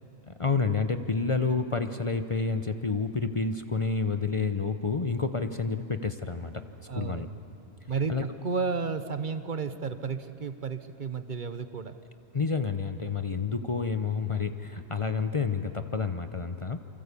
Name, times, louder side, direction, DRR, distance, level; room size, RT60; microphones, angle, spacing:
voice 1, 0.3-6.5 6.9-7.3 8.1-8.2 12.3-16.8, left 4 dB, 35° left, 8 dB, 0.8 m, -29 dB
voice 2, 6.9-7.4 7.9-12.0, right 5 dB, 50° right, 11 dB, 1.0 m, -32 dB
28.0 x 24.0 x 8.3 m, 2.9 s
omnidirectional pair, 1.1 m